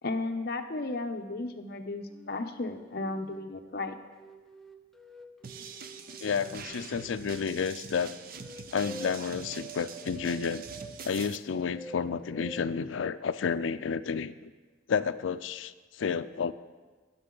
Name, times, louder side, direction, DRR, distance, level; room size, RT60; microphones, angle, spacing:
voice 1, 0.0-4.0, left 2 dB, 55° left, 6 dB, 0.8 m, -34 dB
sound 1, 2.1-3.5 4.1-7.5 8.3-11.0 11.5-12.7, right 1 dB, ahead, 0.6 m, -47 dB
sound 2, 5.4-11.4, right 5 dB, 50° right, 0.6 m, -44 dB
voice 2, 6.2-8.2 8.7-10.6 11.0-14.5 14.9-16.5, left 6 dB, 80° left, 13 dB, 0.4 m, -31 dB
19.5 x 6.8 x 3.9 m, 1.4 s
head